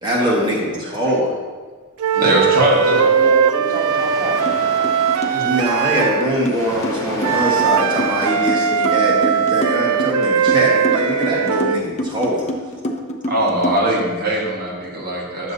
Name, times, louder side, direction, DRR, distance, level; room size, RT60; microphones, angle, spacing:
voice 1, 0.0-1.3 5.4-12.5, equal, 20° right, -5 dB, 1.3 m, -22 dB
Flute - A natural minor - bad-tempo-legato, 2.0-6.3 7.2-11.8, right 8 dB, 80° right, 0.4 m, -19 dB
voice 2, 2.1-3.0 5.3-5.4 13.3-15.5, right 1 dB, 45° right, -4 dB, 1.5 m, -20 dB
voice 3, 2.8-4.4 14.4-15.1 15.4-15.5, left 1 dB, 45° left, -5 dB, 2.4 m, -28 dB
sound 1, 3.6-8.8, equal, 15° left, 1.2 m, -34 dB
sound 2, 4.5-4.6 4.8-14.0, equal, 30° left, 0.6 m, -27 dB
9.4 x 7.1 x 2.7 m, 1.4 s
head